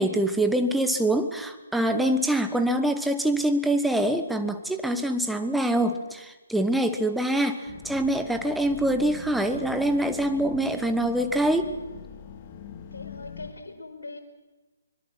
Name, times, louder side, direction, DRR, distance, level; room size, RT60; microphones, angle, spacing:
voice 1, 0.0-11.7, right 1 dB, ahead, 7 dB, 1.3 m, -25 dB
sound 1, 7.7-13.5, left 7 dB, 30° left, 2.2 m, -43 dB
voice 2, 12.9-14.2, left 3 dB, 70° left, 2 dB, 4.9 m, -41 dB
24.5 x 22.0 x 6.3 m, 1.2 s
figure-of-eight pair, 140°, 0 cm